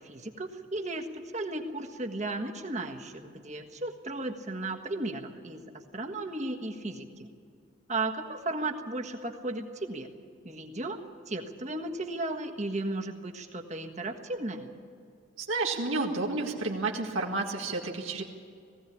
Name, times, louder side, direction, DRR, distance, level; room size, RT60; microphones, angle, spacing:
voice 1, 0.0-7.3 7.9-10.1 10.4-11.0 11.3-14.7, right 2 dB, 35° right, 4 dB, 1.5 m, -35 dB
voice 2, 15.4-18.2, right 3 dB, 85° right, -1 dB, 2.0 m, -31 dB
19.5 x 16.0 x 8.6 m, 2.3 s
head